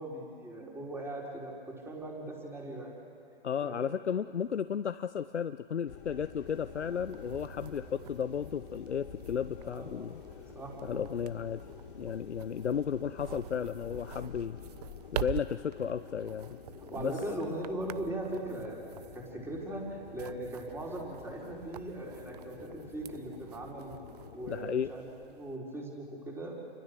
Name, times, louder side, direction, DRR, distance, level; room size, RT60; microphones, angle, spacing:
voice 1, 0.0-3.0 3.6-3.9 9.6-10.0 10.5-11.1 16.9-18.8 19.1-23.9 24.3-26.6, right 1 dB, 5° right, -2 dB, 4.4 m, -39 dB
voice 2, 3.4-10.2 10.8-11.6 12.0-14.6 15.1-16.6 17.0-17.1 24.5-24.9, left 7 dB, 85° left, 11 dB, 0.7 m, -34 dB
sound 1, 5.9-24.9, left 7 dB, 50° left, 3.1 m, -49 dB
sound 2, 6.5-25.6, right 12 dB, 40° right, 0.5 m, -47 dB
29.5 x 24.5 x 6.8 m, 2.5 s
hypercardioid pair, 130°, 33 cm